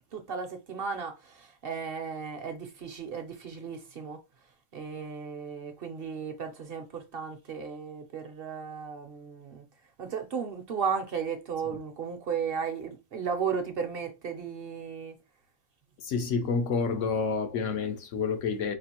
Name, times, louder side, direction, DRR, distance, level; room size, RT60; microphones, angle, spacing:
voice 1, 0.1-4.2 4.7-9.6 10.0-15.1, right 6 dB, 55° right, 0.8 m, -35 dB
voice 2, 16.0-18.8, left 5 dB, 75° left, 1.1 m, -29 dB
5.2 x 2.4 x 2.9 m
omnidirectional pair, 1.3 m